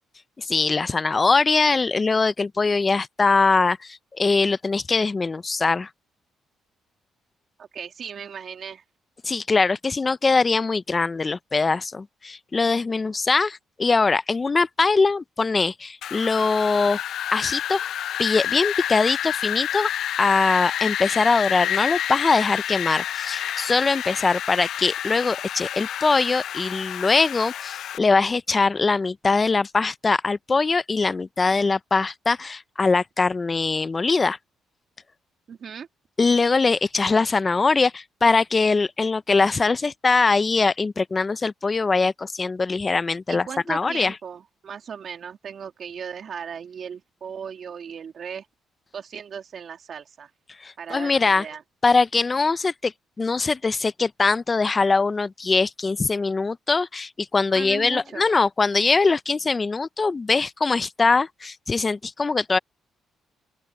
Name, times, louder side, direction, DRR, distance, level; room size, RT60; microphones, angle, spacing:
voice 1, 0.4-5.9 9.2-17.0 17.3-17.9 18.2-19.9 20.2-34.4 36.2-44.2 50.6-51.4 51.8-52.9 53.2-62.6, left 4 dB, 30° left, 0.6 m, -22 dB
voice 2, 7.6-8.8 35.5-35.9 43.3-48.5 48.9-50.3 50.8-51.6 57.5-58.3, right 7 dB, 55° right, 2.2 m, -37 dB
Wind, 16.0-28.0, left 11 dB, 75° left, 0.5 m, -29 dB
open air
cardioid pair, 90°, 0 cm